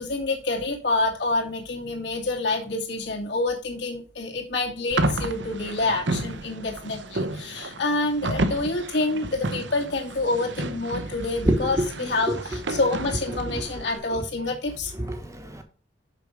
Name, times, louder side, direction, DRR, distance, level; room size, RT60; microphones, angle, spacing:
voice 1, 0.0-14.9, left 2 dB, 60° left, 2.6 m, -27 dB
sound 1, 4.9-14.0, right 2 dB, 70° right, 0.9 m, -31 dB
voice 2, 11.4-12.3 13.3-13.6 14.9-15.6, right 1 dB, 15° right, 1.1 m, -27 dB
6.7 x 6.3 x 5.0 m
head